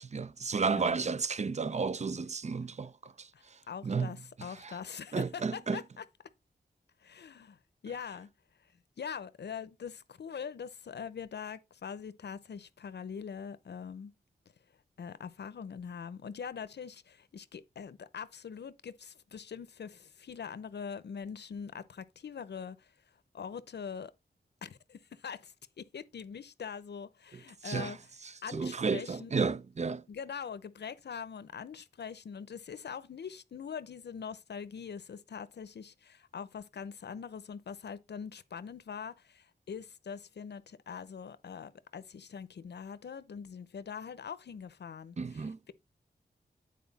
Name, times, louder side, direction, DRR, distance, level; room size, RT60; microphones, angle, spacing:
voice 1, 0.0-3.3 3.8-4.1 4.6-4.8 5.1-5.8 27.6-27.9 28.5-30.0 45.2-45.7, right 5 dB, 40° right, 0.5 m, -32 dB
voice 2, 3.3-6.0 7.0-8.3 9.0-14.1 15.0-22.9 23.3-24.1 24.6-28.0 28.4-29.3 30.1-45.7, left 6 dB, 80° left, 0.7 m, -43 dB
9.3 x 4.5 x 4.1 m
wide cardioid pair, 90°, 17 cm